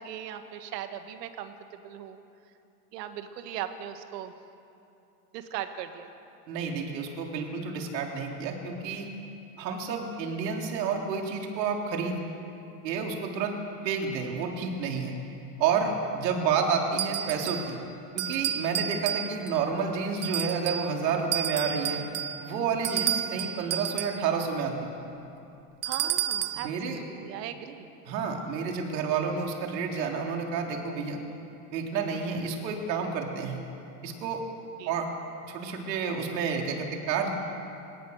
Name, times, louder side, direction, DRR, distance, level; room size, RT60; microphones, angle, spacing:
voice 1, 0.0-2.2 2.9-4.3 5.3-6.1 22.9-23.1 25.8-27.9 34.8-34.9, right 10 dB, 75° right, 8 dB, 2.0 m, -38 dB
voice 2, 6.5-9.1 9.6-12.2 12.8-13.6 13.8-15.1 15.6-17.8 18.1-22.0 22.4-24.9 26.5-27.0 28.1-31.2 31.7-33.6 34.0-34.4 34.9-35.1 35.5-37.3, right 5 dB, 90° right, 1 dB, 3.7 m, -30 dB
sound 1, 17.0-17.7 18.2-19.6 20.2-20.9 21.3-24.3 25.8-26.7, right 10 dB, 30° right, 0.9 m, -31 dB
28.5 x 17.0 x 6.6 m, 2.7 s
supercardioid pair, 145°, 49 cm